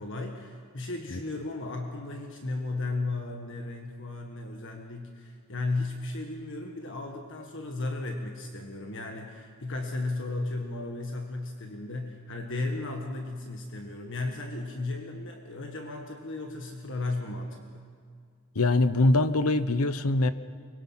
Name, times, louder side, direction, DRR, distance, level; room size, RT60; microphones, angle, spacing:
voice 1, 0.0-17.9, left 2 dB, 55° left, 2 dB, 1.7 m, -35 dB
voice 2, 18.5-20.3, left 2 dB, 75° left, 13 dB, 0.9 m, -23 dB
24.0 x 22.0 x 5.8 m, 2.2 s
head